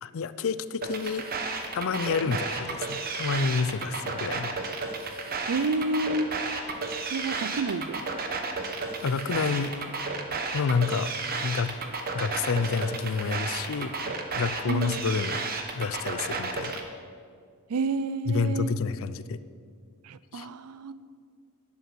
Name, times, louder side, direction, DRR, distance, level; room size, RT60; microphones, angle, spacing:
voice 1, 0.0-1.2 1.7-4.5 9.0-9.7 10.5-11.1 11.4-11.7 12.1-13.9 14.4-15.4 15.7-16.8 18.3-19.4 20.3-20.5, left 5 dB, 65° left, 14 dB, 0.5 m, -29 dB
sound 1, 0.8-16.8, right 4 dB, 40° right, 1.1 m, -32 dB
voice 2, 5.5-6.3 7.1-8.1 14.7-15.0 17.7-18.8 20.0-21.1, right 3 dB, 80° right, 16 dB, 0.5 m, -30 dB
11.0 x 9.3 x 6.1 m, 2.2 s
head